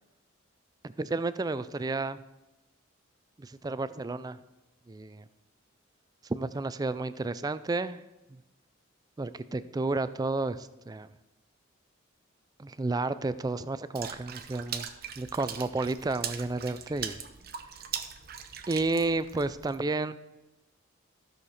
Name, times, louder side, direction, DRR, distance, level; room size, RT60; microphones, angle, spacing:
voice 1, 0.8-2.2 3.4-4.4 4.9-5.2 6.3-8.0 9.2-11.1 12.6-14.9 15.2-17.2 18.7-20.2, right 3 dB, 20° right, 14 dB, 0.3 m, -31 dB
Water / Splash splatter, 14.0-19.8, right 8 dB, 50° right, 0.7 m, -40 dB
13.0 x 6.6 x 4.2 m, 1.0 s
head